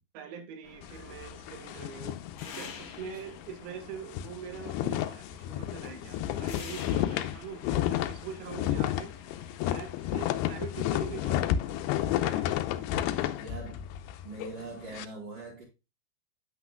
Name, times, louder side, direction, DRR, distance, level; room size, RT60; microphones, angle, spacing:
voice 1, 0.1-9.1 9.6-11.6 12.2-12.9, right 7 dB, 75° right, 3.2 m, -44 dB
sound 1, 0.6-13.0, left 6 dB, 65° left, 1.7 m, -50 dB
sound 2, 0.8-3.1 3.4-3.6 3.9-15.1, left 12 dB, 85° left, 2.7 m, -32 dB
voice 2, 13.4-13.9 14.2-15.6, right 2 dB, 55° right, 3.7 m, -42 dB
8.7 x 8.1 x 2.2 m
omnidirectional pair, 4.7 m